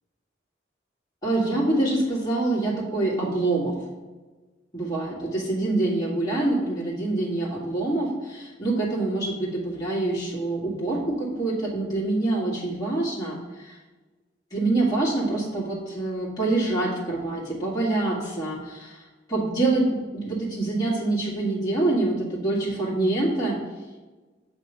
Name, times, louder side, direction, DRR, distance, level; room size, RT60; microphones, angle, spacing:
voice 1, 1.2-3.7 4.7-13.8 14.5-19.9 20.1-23.6, right 2 dB, 20° left, -6 dB, 1.9 m, -25 dB
8.3 x 3.5 x 5.4 m, 1.3 s
head